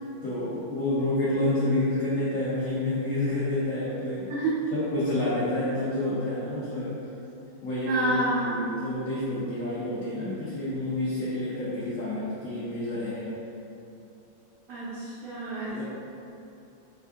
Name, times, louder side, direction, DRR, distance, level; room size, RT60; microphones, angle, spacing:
voice 1, 0.2-4.3 4.7-7.0 7.6-13.3 15.7-15.8, left 1 dB, 80° left, -10 dB, 0.7 m, -29 dB
voice 2, 4.3-4.6 7.8-8.7 14.7-15.8, right 1 dB, 90° right, -8 dB, 0.7 m, -29 dB
4.5 x 2.5 x 2.3 m, 2.8 s
omnidirectional pair, 2.2 m